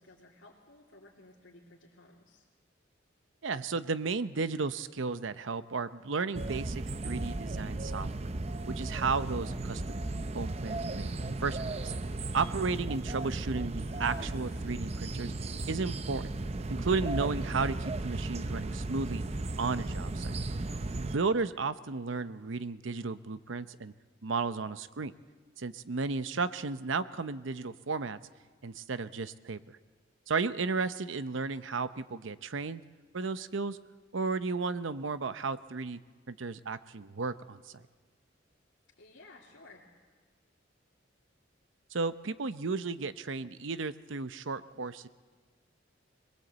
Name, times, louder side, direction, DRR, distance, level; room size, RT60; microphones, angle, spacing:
voice 1, 0.0-2.4 21.2-21.4 39.0-39.8, left 2 dB, 75° left, -5 dB, 2.9 m, -56 dB
voice 2, 3.4-8.1 8.7-10.0 10.3-11.6 11.8-11.9 12.3-15.3 15.7-16.4 16.7-19.2 19.6-20.4 20.9-23.9 24.2-25.1 25.6-28.2 28.6-29.8 30.3-32.8 33.1-33.8 34.1-36.0 36.3-37.7 41.9-45.1, right 4 dB, 80° right, 13 dB, 0.7 m, -34 dB
sound 1, 6.3-21.2, right 2 dB, 30° right, 0.6 m, -35 dB
sound 2, 11.3-11.5 11.7-13.5 13.8-14.9, equal, 15° left, 7.4 m, -56 dB
21.5 x 21.0 x 8.0 m, 1.5 s
head